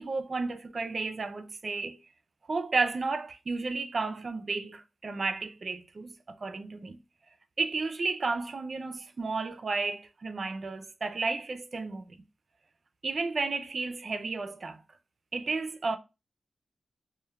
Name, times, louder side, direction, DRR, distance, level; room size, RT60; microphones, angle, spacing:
voice 1, 0.0-2.0 2.5-7.0 7.6-12.2 13.0-14.8 15.3-16.0, right 3 dB, 50° right, 0.3 m, -32 dB
2.2 x 2.0 x 3.0 m
wide cardioid pair, 110°, 0 cm